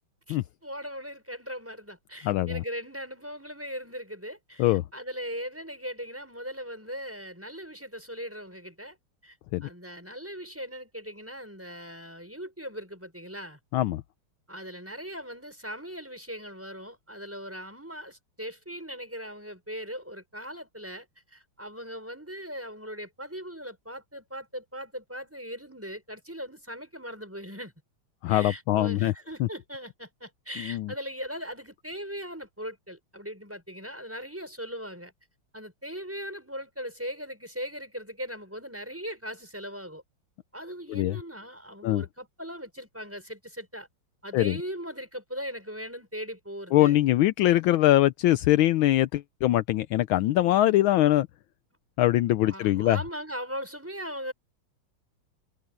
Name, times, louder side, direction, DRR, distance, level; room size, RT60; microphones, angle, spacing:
voice 1, 0.3-9.0 9.2-9.4 9.6-13.6 14.5-27.7 28.3-35.1 35.5-40.0 40.5-43.9 44.2-47.0 50.4-50.6 52.4-54.3, equal, 5° right, 5.9 m, -39 dB
voice 2, 2.2-2.6 4.6-4.8 9.5-9.7 13.7-14.0 28.2-29.1 29.4-29.5 30.6-30.9 40.9-41.2 41.8-42.0 44.3-44.6 46.7-51.3 52.0-53.0, left 15 dB, 75° left, 1.4 m, -22 dB
omnidirectional pair, 2.3 m